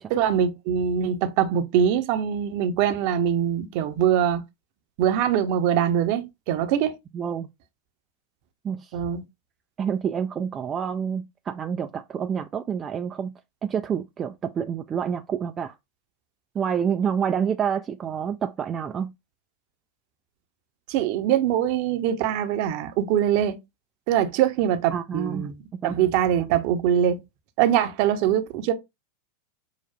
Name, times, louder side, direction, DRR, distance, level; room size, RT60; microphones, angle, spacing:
voice 1, 0.1-4.4 5.0-6.9 8.9-9.2 20.9-23.6 24.1-25.5 25.8-27.2 27.6-28.7, right 9 dB, 50° right, 0.7 m, -23 dB
voice 2, 7.1-7.5 8.6-8.9 9.8-13.3 13.6-15.7 16.5-19.1 24.9-25.5 25.8-26.0, right 7 dB, 25° right, 0.3 m, -28 dB
5.6 x 2.3 x 2.3 m
figure-of-eight pair, 85°, 0 cm